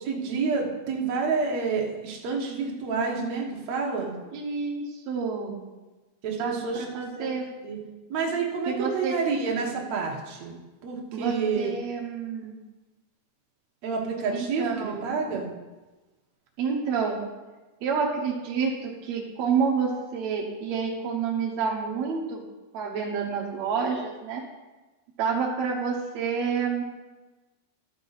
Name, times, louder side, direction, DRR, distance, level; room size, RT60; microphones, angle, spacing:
voice 1, 0.0-4.1 6.2-7.3 7.6-7.8 8.1-10.5 10.8-11.7 13.8-15.5, right 5 dB, 65° right, -1 dB, 1.8 m, -29 dB
voice 2, 4.3-5.6 6.4-7.5 8.7-9.2 11.1-12.6 14.3-15.1 16.6-17.2 17.8-22.4 22.7-24.4 25.2-26.8, right 5 dB, 90° right, -1 dB, 1.5 m, -29 dB
13.5 x 6.7 x 4.0 m, 1.2 s
omnidirectional pair, 4.9 m